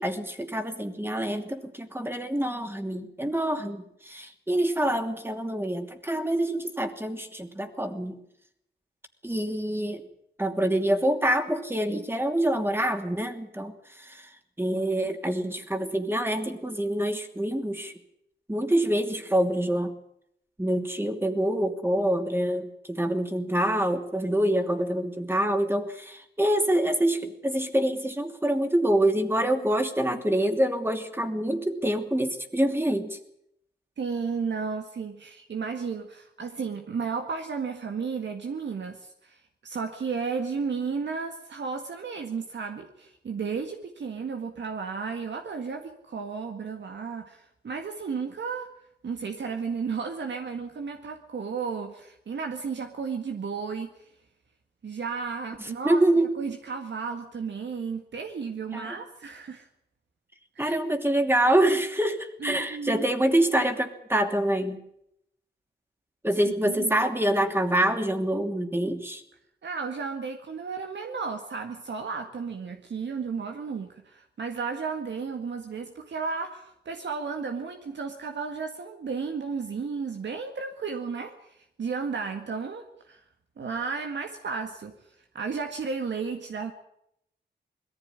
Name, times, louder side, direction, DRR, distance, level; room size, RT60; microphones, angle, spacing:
voice 1, 0.0-8.2 9.2-10.0 10.4-17.9 18.5-20.0 20.6-33.2 55.6-56.4 58.7-59.0 60.6-64.8 66.2-69.2, right 1 dB, 10° right, 6 dB, 2.8 m, -26 dB
voice 2, 34.0-48.7 49.0-53.9 54.8-56.0 56.4-59.7 60.6-60.8 62.4-63.1 66.5-66.9 69.6-83.2 83.6-84.9 85.3-86.7, right 5 dB, 80° right, 5 dB, 1.9 m, -33 dB
21.5 x 15.0 x 9.8 m, 0.76 s
wide cardioid pair, 80°, 18 cm